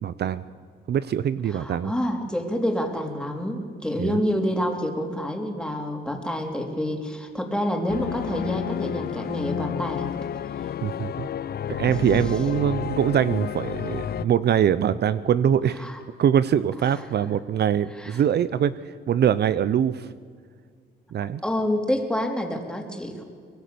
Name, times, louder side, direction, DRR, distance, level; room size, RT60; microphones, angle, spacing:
voice 1, 0.0-0.4 0.9-1.9 4.0-4.2 10.8-11.3 11.7-15.9 16.2-20.1 21.1-21.4, right 9 dB, 55° right, 15 dB, 0.7 m, -23 dB
voice 2, 1.5-10.1 10.6-10.7 11.9-12.3 15.8-16.0 16.8-17.0 18.0-18.2 21.4-23.2, equal, 5° left, 2 dB, 3.9 m, -28 dB
sound 1, 7.9-14.3, left 9 dB, 50° left, 0.6 m, -31 dB
24.5 x 21.0 x 7.0 m, 2.1 s
cardioid pair, 90°, 20 cm